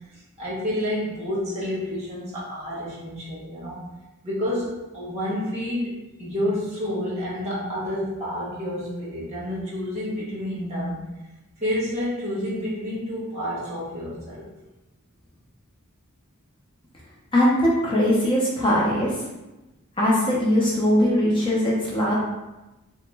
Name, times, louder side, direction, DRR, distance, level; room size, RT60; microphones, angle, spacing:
voice 1, 0.4-3.8 4.2-11.0 11.6-14.4, left 1 dB, 30° right, -7 dB, 1.1 m, -29 dB
voice 2, 17.3-19.1 20.0-22.1, equal, 25° left, -5 dB, 0.5 m, -20 dB
2.9 x 2.1 x 3.2 m, 1.0 s
head